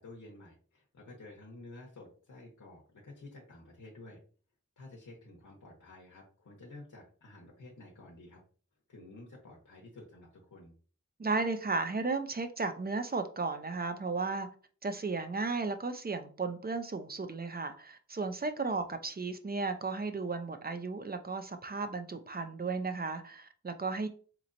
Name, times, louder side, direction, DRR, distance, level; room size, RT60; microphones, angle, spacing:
voice 1, 0.0-4.2 4.8-8.4 8.9-10.8 18.7-18.8, left 2 dB, 90° left, 0.9 m, -51 dB
voice 2, 11.2-14.5 14.8-24.1, right 3 dB, 30° right, 0.5 m, -34 dB
4.0 x 2.9 x 2.5 m
wide cardioid pair, 75°, 30 cm